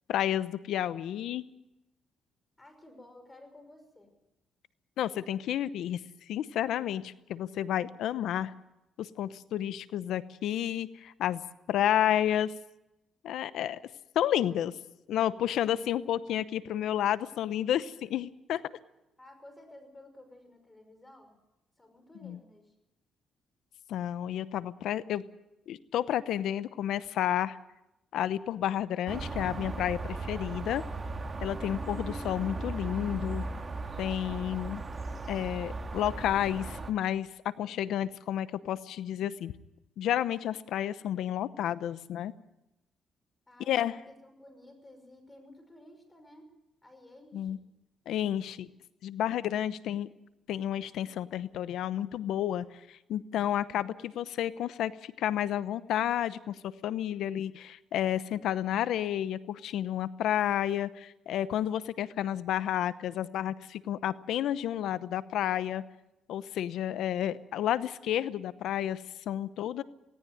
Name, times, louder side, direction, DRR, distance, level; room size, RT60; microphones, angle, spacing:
voice 1, 0.1-1.4 5.0-6.0 6.3-8.5 9.0-11.4 11.7-12.5 13.2-13.8 14.1-14.7 15.1-18.6 22.2-22.4 23.9-25.2 25.7-27.6 28.1-30.8 31.4-33.4 34.0-34.8 35.3-39.5 40.0-42.3 43.7-44.0 47.3-47.6 48.1-48.7 49.0-50.1 50.5-65.8 66.3-69.8, left 11 dB, 80° left, 15 dB, 0.8 m, -31 dB
voice 2, 2.6-4.1 19.2-21.4 21.8-22.7 43.5-46.5 46.8-47.6, left 1 dB, 20° left, 7 dB, 5.7 m, -54 dB
sound 1, 29.1-36.9, right 3 dB, 30° right, 2.0 m, -37 dB
17.5 x 17.5 x 9.3 m, 0.91 s
cardioid pair, 90°, 0 cm